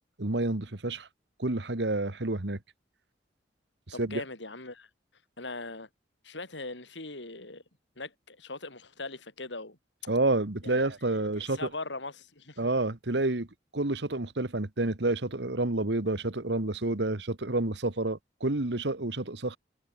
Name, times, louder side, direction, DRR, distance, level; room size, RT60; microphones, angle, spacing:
voice 1, 0.2-1.1 1.4-2.6 4.0-4.2 10.1-11.7 12.6-13.5 13.7-19.6, right 2 dB, 75° right, 1.6 m, -29 dB
voice 2, 3.9-4.9 5.4-5.9 6.2-7.6 8.0-9.8 10.6-10.9 11.2-12.6, left 3 dB, 85° left, 5.0 m, -40 dB
head